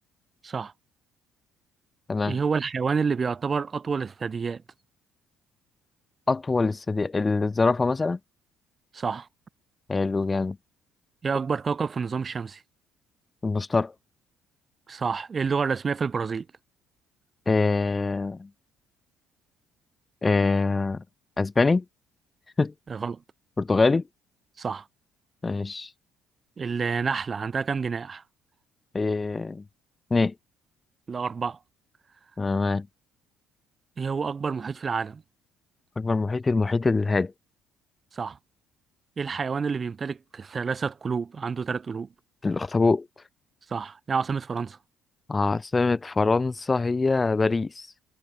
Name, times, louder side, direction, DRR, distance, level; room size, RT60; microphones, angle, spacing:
voice 1, 2.2-4.6 8.9-9.3 11.2-12.6 14.9-16.5 22.9-23.2 24.6-24.9 26.6-28.2 31.1-31.6 34.0-35.2 38.1-38.4 39.2-42.1 43.7-44.8, right 5 dB, 35° right, 7.5 m, -28 dB
voice 2, 6.3-8.2 9.9-10.6 13.4-13.9 17.5-18.5 20.2-21.0 21.4-21.8 22.6-22.7 23.6-24.0 25.4-25.9 28.9-29.6 30.1-30.3 32.4-32.9 36.0-37.3 42.4-43.0 45.3-47.9, left 3 dB, 25° left, 4.9 m, -24 dB
supercardioid pair, 65°, 0 cm